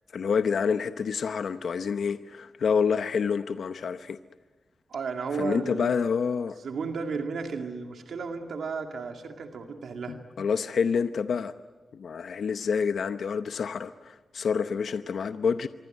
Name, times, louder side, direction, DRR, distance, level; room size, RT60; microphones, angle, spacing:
voice 1, 0.1-4.2 5.4-6.6 10.1-11.5 11.9-15.7, left 6 dB, 80° left, 10 dB, 0.8 m, -28 dB
voice 2, 4.9-5.9 6.6-10.2, right 5 dB, 90° right, 4 dB, 2.2 m, -33 dB
26.0 x 24.0 x 9.2 m, 1.2 s
wide cardioid pair, 110°, 0 cm